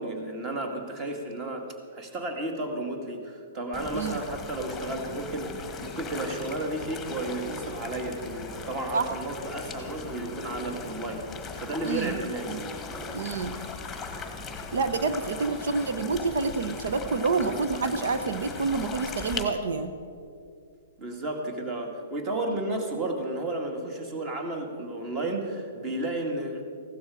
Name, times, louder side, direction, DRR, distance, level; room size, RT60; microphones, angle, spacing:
voice 1, 0.0-11.3 11.5-12.6 21.0-26.6, right 1 dB, 25° right, 4 dB, 2.0 m, -33 dB
sound 1, 3.7-19.4, left 4 dB, 10° left, 1.5 m, -39 dB
voice 2, 11.8-12.2 12.5-12.6 13.1-13.5 14.7-19.9, right 4 dB, 75° right, 9 dB, 0.9 m, -28 dB
16.0 x 12.5 x 4.9 m, 2.4 s
hypercardioid pair, 155°, 0 cm